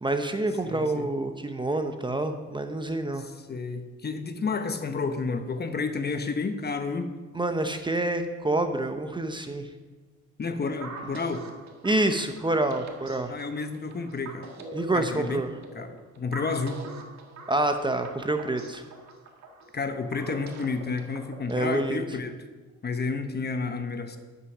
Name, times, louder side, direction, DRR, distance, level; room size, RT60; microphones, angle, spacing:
voice 1, 0.0-3.3 7.3-9.7 11.8-13.4 14.7-15.5 17.5-18.8 21.5-22.0, right 2 dB, 15° right, 7 dB, 0.8 m, -27 dB
voice 2, 0.6-1.1 3.2-7.1 10.4-11.5 13.3-14.5 14.9-15.4 15.7-16.8 19.7-22.4 22.8-24.2, left 4 dB, 35° left, 8 dB, 0.9 m, -31 dB
sound 1, 10.8-21.8, right 3 dB, 65° right, 1.6 m, -44 dB
10.5 x 6.8 x 6.1 m, 1.3 s
cardioid pair, 90°, 30 cm